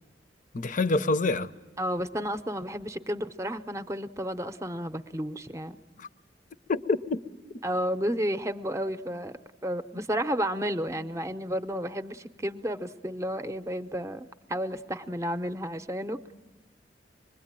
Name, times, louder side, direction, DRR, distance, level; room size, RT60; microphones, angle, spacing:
voice 1, 0.5-1.5 6.0-6.1 6.7-7.2, left 3 dB, 50° left, 0.7 m, -26 dB
voice 2, 1.8-5.8 7.6-9.3 9.6-16.3, equal, 15° right, 0.7 m, -32 dB
25.5 x 21.5 x 8.8 m
head